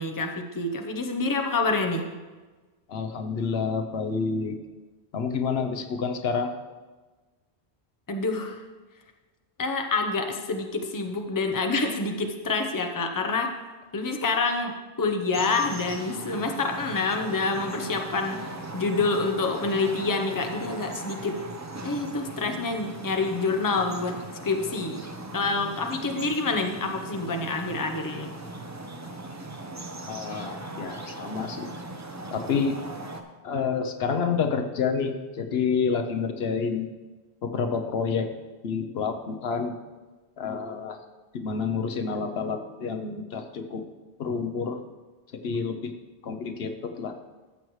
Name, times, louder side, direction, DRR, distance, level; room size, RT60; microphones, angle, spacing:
voice 1, 0.0-2.1 8.1-8.6 9.6-13.5 13.9-18.4 18.7-21.3 21.8-24.2 24.4-25.0 25.3-28.3, left 3 dB, 20° left, 4 dB, 0.7 m, -27 dB
voice 2, 2.9-4.6 5.1-6.5 30.1-31.7 32.3-32.8 33.4-36.9 37.4-38.3 38.6-39.7 40.4-41.0 41.3-43.8 44.2-44.8 45.4-45.9 46.2-47.1, left 5 dB, 70° left, 6 dB, 0.9 m, -28 dB
sound 1, 15.3-33.2, right 2 dB, 20° right, 0.5 m, -39 dB
13.0 x 7.6 x 3.1 m, 1.3 s
omnidirectional pair, 1.1 m